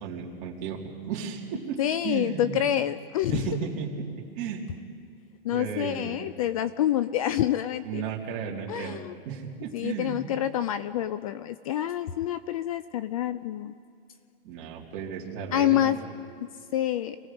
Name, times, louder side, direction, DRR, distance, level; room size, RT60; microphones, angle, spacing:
voice 1, 0.0-2.6 3.3-4.7 5.5-6.2 7.8-10.2 14.4-16.0, right 7 dB, 35° right, -2 dB, 2.9 m, -34 dB
voice 2, 1.8-3.5 5.4-8.1 8.7-9.1 9.7-13.7 15.5-16.0 16.7-17.2, left 12 dB, 35° left, 14 dB, 0.4 m, -27 dB
26.5 x 18.5 x 5.2 m, 2.2 s
supercardioid pair, 160°, 30 cm